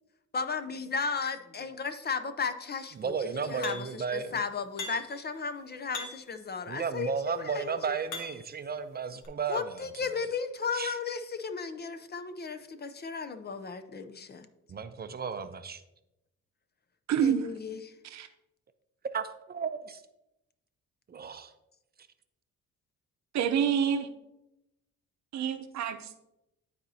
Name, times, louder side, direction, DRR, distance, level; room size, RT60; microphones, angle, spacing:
voice 1, 0.3-8.0 9.5-14.5 17.2-17.9, left 5 dB, 35° left, 9 dB, 0.6 m, -35 dB
voice 2, 3.0-4.4 6.7-10.2 10.7-11.0 14.7-15.8 19.1-20.0 21.1-21.5, right 6 dB, 30° right, 10 dB, 0.5 m, -34 dB
sound 1, 3.6-4.1 4.8-5.2 5.9-6.4 7.2-8.6 9.2-9.3, left 4 dB, 90° left, 1.4 m, -41 dB
voice 3, 17.1-17.5 18.0-18.3 23.3-24.1 25.3-26.2, right 8 dB, 65° right, 9 dB, 0.7 m, -28 dB
12.0 x 4.2 x 2.8 m, 0.90 s
cardioid pair, 90°, 30 cm